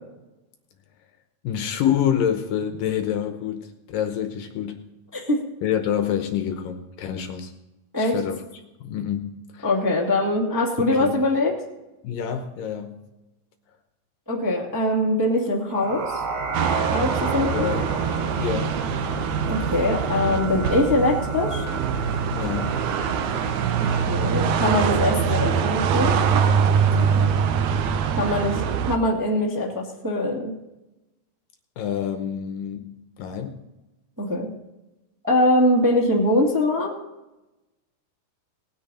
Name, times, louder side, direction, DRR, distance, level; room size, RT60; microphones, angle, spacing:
voice 1, 1.4-4.9 5.6-7.5 8.0-9.7 10.8-11.3 12.0-13.0 17.5-18.0 18.4-18.8 22.3-22.8 26.9-27.5 31.8-33.6, left 9 dB, 70° left, 6 dB, 2.4 m, -27 dB
voice 2, 9.6-11.5 14.3-16.2 16.9-17.7 19.5-21.6 24.1-26.1 28.1-28.6 28.9-30.5 34.2-34.5 35.2-36.9, left 1 dB, 10° right, -2 dB, 1.2 m, -22 dB
sound 1, 15.7-24.1, right 4 dB, 65° right, 3.6 m, -30 dB
sound 2, 16.5-29.0, right 7 dB, 80° right, 1.7 m, -24 dB
19.0 x 9.6 x 4.2 m, 1.0 s
omnidirectional pair, 4.5 m